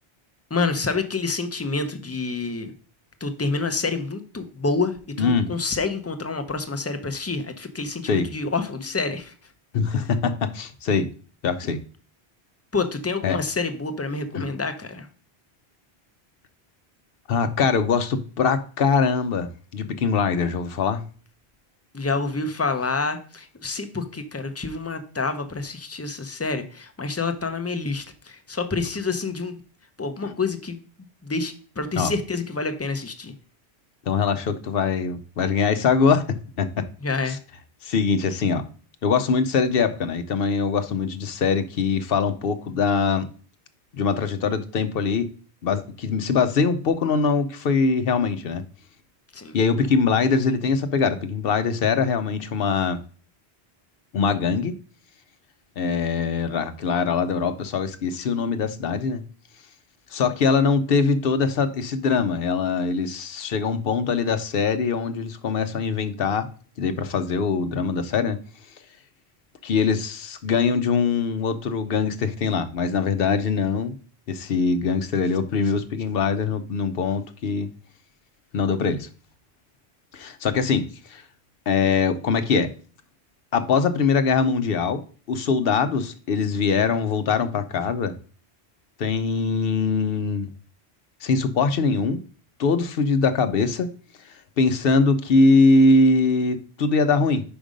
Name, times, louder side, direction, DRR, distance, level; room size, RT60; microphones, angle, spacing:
voice 1, 0.5-2.7 3.2-9.3 12.7-15.1 21.9-29.6 30.0-30.8 31.2-33.3 37.0-37.4 49.3-49.6, left 3 dB, 20° left, 0.5 m, -28 dB
voice 2, 5.2-5.5 8.1-8.3 9.7-11.1 11.4-11.8 13.2-13.4 14.3-14.4 17.3-21.0 30.2-30.3 32.0-32.1 34.1-36.8 37.3-37.4 37.8-38.6 39.0-43.3 43.9-45.3 45.6-48.6 49.5-53.0 54.1-54.8 55.8-59.2 60.1-66.5 66.8-68.4 69.6-73.9 74.3-77.7 78.5-79.1 80.1-81.2 81.7-82.7 83.5-85.0 85.3-88.1 89.0-90.5 91.2-92.2 92.6-93.9 94.6-97.4, left 4 dB, 65° left, 0.8 m, -22 dB
5.2 x 5.1 x 5.0 m
omnidirectional pair, 1.1 m